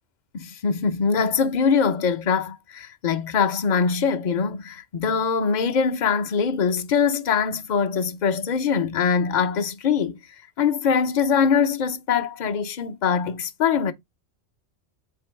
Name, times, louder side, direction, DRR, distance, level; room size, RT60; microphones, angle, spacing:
voice 1, 0.3-10.2 10.6-13.9, left 6 dB, 45° left, 0.8 m, -23 dB
8.3 x 3.0 x 4.6 m
omnidirectional pair, 1.1 m